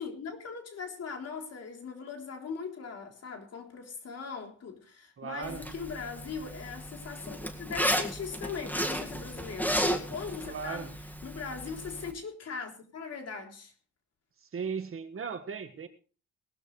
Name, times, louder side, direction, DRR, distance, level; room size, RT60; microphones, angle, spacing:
voice 1, 0.0-10.9 11.2-13.7, left 5 dB, 55° left, 3.7 m, -40 dB
voice 2, 5.2-5.7 10.5-10.9 14.5-15.9, right 6 dB, 45° right, 1.8 m, -37 dB
Zipper (clothing), 5.4-12.1, equal, 5° left, 2.0 m, -34 dB
19.5 x 12.0 x 3.3 m
cardioid pair, 90°, 30 cm